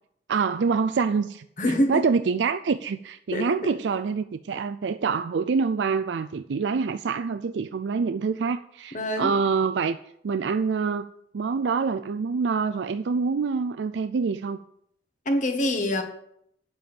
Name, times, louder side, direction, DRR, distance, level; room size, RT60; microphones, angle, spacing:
voice 1, 0.3-1.5 1.9-10.0 10.2-11.1 11.3-14.6, right 5 dB, 80° right, 0.4 m, -26 dB
voice 2, 1.6-2.0 3.3-3.5 8.9-9.3 15.2-16.0, left 1 dB, 45° left, 1.5 m, -24 dB
9.0 x 7.8 x 6.9 m
head